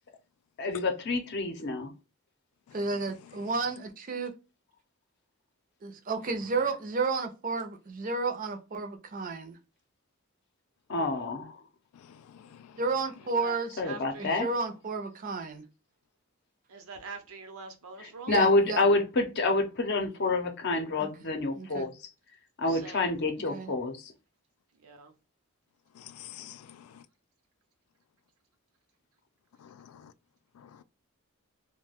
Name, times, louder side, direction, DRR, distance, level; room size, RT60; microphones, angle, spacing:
voice 1, 0.6-1.9 10.9-11.6 13.8-14.5 18.0-21.9 22.6-24.1, left 2 dB, 50° left, 0.6 m, -28 dB
voice 2, 2.7-4.3 5.8-9.6 12.8-13.8 14.2-15.6 18.3-18.8 21.0-21.1 21.5-21.9 23.5-23.7, right 4 dB, 40° right, 0.5 m, -32 dB
voice 3, 12.1-12.7 26.0-27.0 29.6-30.1 30.6-30.8, left 11 dB, 90° left, 0.3 m, -49 dB
voice 4, 13.2-14.5 16.7-18.3 22.7-23.1 24.8-25.1, right 4 dB, 85° right, 0.7 m, -44 dB
2.3 x 2.2 x 3.3 m
head